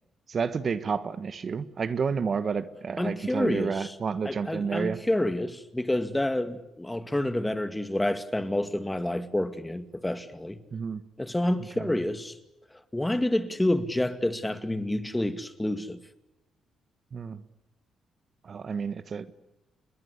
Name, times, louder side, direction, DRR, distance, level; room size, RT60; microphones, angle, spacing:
voice 1, 0.3-5.0 10.7-11.0 11.8-11.9 17.1-17.4 18.4-19.4, right 5 dB, 45° right, 1.4 m, -30 dB
voice 2, 3.0-3.9 4.2-10.6 11.2-12.4 12.7-16.0, left 1 dB, 10° left, 2.3 m, -28 dB
29.0 x 22.0 x 8.3 m
cardioid pair, 90°, 0 cm